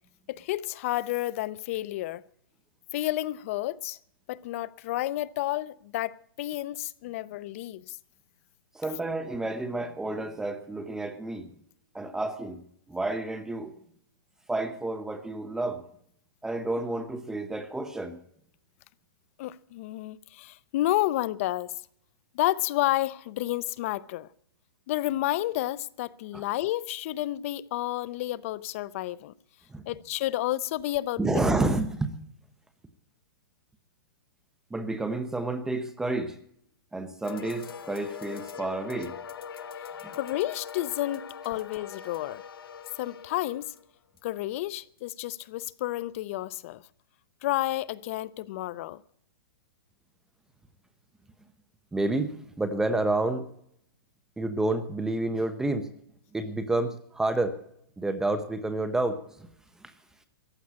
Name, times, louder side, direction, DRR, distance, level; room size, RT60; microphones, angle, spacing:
voice 1, 0.3-2.2 2.9-4.0 4.3-8.0 19.4-21.7 22.3-24.3 24.9-29.3 29.9-31.2 40.1-42.4 43.0-43.7 44.2-46.8 47.4-49.0, left 15 dB, 35° left, 0.5 m, -30 dB
voice 2, 8.7-11.5 11.9-12.6 12.9-13.7 14.5-15.8 16.4-18.2 26.3-26.5 29.7-29.8 31.2-32.1 34.7-36.4 36.9-39.1 40.0-40.2 51.9-53.4 54.4-55.9 56.3-57.6 58.0-59.5 59.8-59.9, right 2 dB, 5° right, 0.7 m, -30 dB
sound 1, 37.2-43.9 44.2-44.3 45.0-45.1 45.4-45.5, left 7 dB, 90° left, 1.1 m, -42 dB
15.0 x 9.5 x 8.4 m
hypercardioid pair, 160°, 12 cm